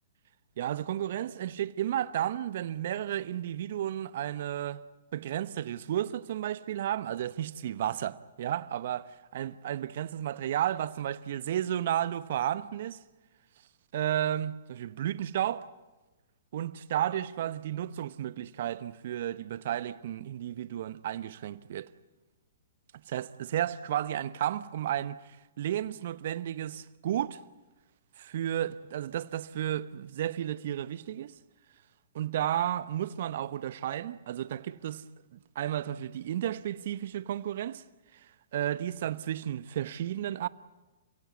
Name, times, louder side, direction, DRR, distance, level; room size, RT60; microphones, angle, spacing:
voice 1, 0.6-4.8 5.1-13.0 13.9-15.7 16.5-21.9 23.1-25.2 25.6-27.4 28.2-31.3 32.1-35.0 35.3-37.8 38.5-40.5, right 11 dB, 55° right, 0.9 m, -32 dB
29.5 x 17.0 x 9.5 m
figure-of-eight pair, 115°, 0 cm